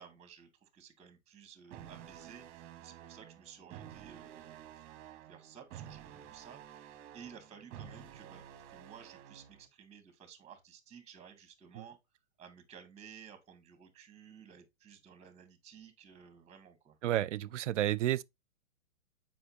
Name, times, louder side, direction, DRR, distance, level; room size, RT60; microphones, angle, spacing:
voice 1, 0.0-4.7 5.3-12.0 12.4-17.0, right 7 dB, 15° right, 1.8 m, -55 dB
sound 1, 1.7-9.7, right 10 dB, 30° right, 1.1 m, -51 dB
voice 2, 17.0-18.2, right 13 dB, 60° right, 0.6 m, -31 dB
7.7 x 5.1 x 2.8 m
hypercardioid pair, 125°, 41 cm